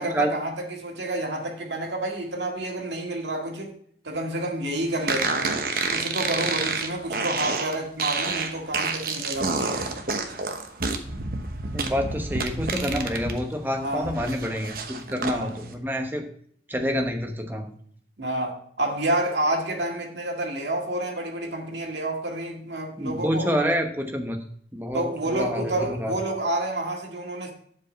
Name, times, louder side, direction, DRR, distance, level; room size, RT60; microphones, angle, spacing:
voice 1, 0.0-3.7 4.0-5.6 5.9-9.9 13.8-14.1 15.3-15.6 18.2-23.5 24.9-27.5, right 1 dB, 75° right, 2.0 m, -29 dB
sound 1, 5.1-13.4 13.7-15.4, right 4 dB, 50° right, 1.0 m, -29 dB
voice 2, 11.7-16.3 16.7-17.7 23.0-24.4 24.7-26.1, equal, 10° right, 1.0 m, -28 dB
8.4 x 4.9 x 7.4 m
head